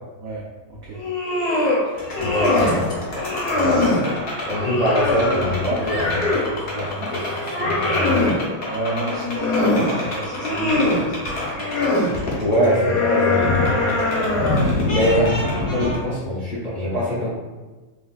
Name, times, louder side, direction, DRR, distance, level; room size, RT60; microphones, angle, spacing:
sound 1, 0.9-1.8 2.1-2.8 3.2-4.0 4.5-6.5 7.0-8.4 9.0-9.9 10.3-11.0 11.5-12.1 12.6-14.8, left 2 dB, 60° left, 1.1 m, -22 dB
sound 2, 1.9-16.0, left 2 dB, 75° left, 0.5 m, -28 dB
voice 1, 2.2-2.9 3.5-3.8 4.5-8.4 12.4-13.9 14.9-15.3 15.7-17.3, equal, 35° left, -10 dB, 0.8 m, -23 dB
voice 2, 8.7-12.0 14.2-14.6, right 2 dB, 75° right, -5 dB, 0.7 m, -31 dB
3.8 x 3.1 x 2.5 m, 1.2 s
omnidirectional pair, 2.1 m